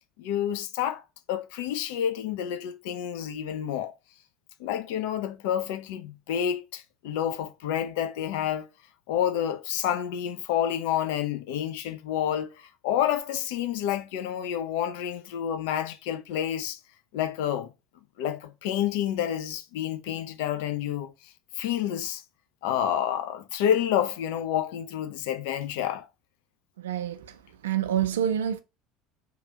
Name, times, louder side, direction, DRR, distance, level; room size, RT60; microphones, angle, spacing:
voice 1, 0.2-1.0 1.3-3.9 4.6-8.7 9.1-16.8 17.1-17.7 18.2-22.2 22.6-26.1, left 10 dB, 65° left, 0.4 m, -29 dB
voice 2, 26.8-28.6, right 10 dB, 70° right, 0.4 m, -28 dB
3.0 x 2.4 x 2.9 m
figure-of-eight pair, 65°, 0 cm